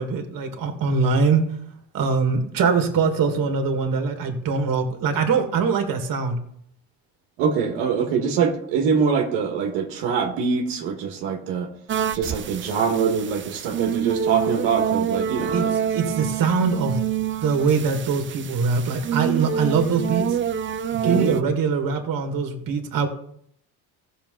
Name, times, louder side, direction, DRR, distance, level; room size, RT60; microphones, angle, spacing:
voice 1, 0.0-1.5 1.9-6.4 15.5-15.6 15.9-17.0 17.4-20.4 20.9-23.1, right 5 dB, 55° right, 5 dB, 2.1 m, -22 dB
voice 2, 7.4-11.7 12.1-15.7 21.0-21.3, right 6 dB, 90° right, 2 dB, 1.8 m, -24 dB
sound 1, 11.9-21.4, right 8 dB, 30° right, 0.5 m, -27 dB
15.0 x 6.9 x 3.9 m, 0.68 s
cardioid pair, 95°, 40 cm